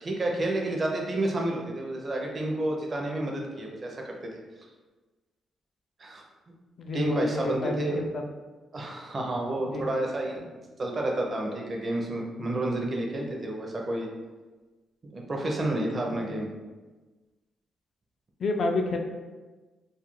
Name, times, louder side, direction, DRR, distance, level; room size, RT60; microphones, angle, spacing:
voice 1, 0.0-4.4 6.0-6.2 6.9-8.0 8.7-10.4 10.8-14.1 15.0-16.5, right 1 dB, 30° right, 0 dB, 0.4 m, -30 dB
voice 2, 6.8-8.2 9.6-9.8 10.4-10.5 16.1-16.4 18.4-19.0, left 2 dB, 50° left, 3 dB, 0.3 m, -30 dB
2.3 x 2.2 x 3.0 m, 1.3 s
cardioid pair, 130°, 0 cm